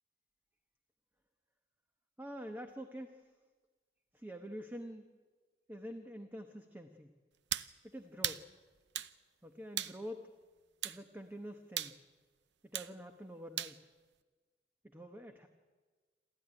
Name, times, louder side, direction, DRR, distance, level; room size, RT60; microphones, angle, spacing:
voice 1, 2.2-3.3 4.1-5.1 5.7-7.1 7.8-8.5 9.4-10.3 10.8-12.0 12.7-13.9 14.8-15.5, equal, 10° right, 6 dB, 1.0 m, -46 dB
sound 1, 7.5-7.7 8.2-8.4 9.0-9.1 9.8-10.0 10.8-11.0 11.8-12.0 12.7-12.9 13.6-13.8, right 11 dB, 75° right, 0.7 m, -37 dB
28.0 x 13.5 x 10.0 m, 1.4 s
head